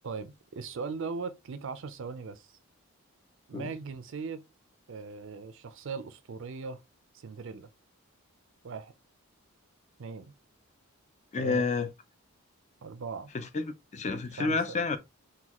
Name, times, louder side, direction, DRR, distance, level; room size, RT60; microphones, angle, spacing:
voice 1, 0.0-2.6 3.5-4.5 4.9-6.8 7.1-7.7 8.6-8.9 10.0-10.3 11.4-11.6 12.8-13.3 14.4-14.8, right 5 dB, 55° right, 0.4 m, -39 dB
voice 2, 11.3-11.9 13.3-13.6 13.9-15.0, left 4 dB, 30° left, 0.4 m, -29 dB
3.9 x 2.3 x 2.9 m
head